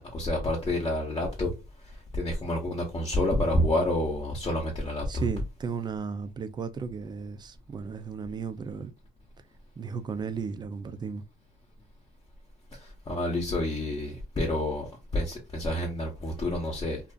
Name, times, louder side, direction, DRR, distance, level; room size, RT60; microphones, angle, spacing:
voice 1, 0.0-1.5 1.8-5.3 12.7-17.0, left 1 dB, 25° left, 0.7 m, -29 dB
voice 2, 5.1-8.9 9.8-11.2, right 5 dB, 25° right, 0.4 m, -35 dB
2.5 x 2.4 x 2.2 m
cardioid pair, 110°, 17 cm